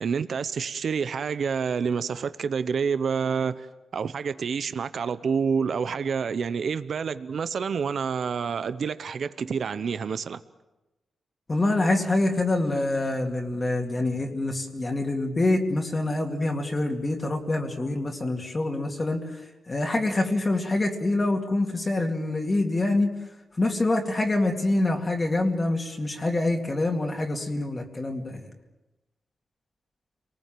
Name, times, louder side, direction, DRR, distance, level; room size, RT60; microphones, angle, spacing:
voice 1, 0.0-3.7 3.9-10.4, right 6 dB, 65° right, 0.8 m, -28 dB
voice 2, 11.5-19.2 19.7-23.1 23.6-28.5, left 2 dB, 25° left, 2.3 m, -25 dB
30.0 x 19.5 x 7.6 m
wide cardioid pair, 125°, 0 cm